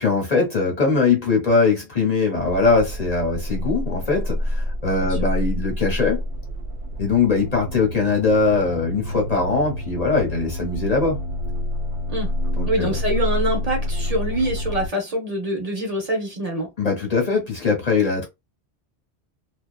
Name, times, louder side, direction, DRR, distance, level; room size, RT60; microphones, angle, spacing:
voice 1, 0.0-6.2 7.0-11.2 12.6-13.0 16.8-18.3, left 4 dB, 40° left, 0.7 m, -21 dB
sound 1, 2.3-14.9, left 1 dB, 80° right, 0.9 m, -28 dB
voice 2, 12.6-16.7, right 1 dB, 40° right, 0.9 m, -25 dB
2.8 x 2.1 x 2.3 m
omnidirectional pair, 1.1 m